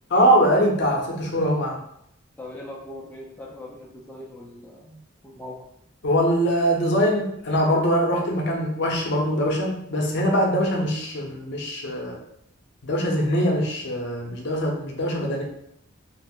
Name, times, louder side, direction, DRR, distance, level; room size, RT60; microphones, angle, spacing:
voice 1, 0.1-1.8 6.0-12.2 12.8-15.4, equal, 55° left, 0 dB, 0.6 m, -22 dB
voice 2, 2.4-5.0 5.2-5.6, left 1 dB, 10° left, -5 dB, 0.3 m, -40 dB
2.4 x 2.0 x 3.4 m, 0.75 s
head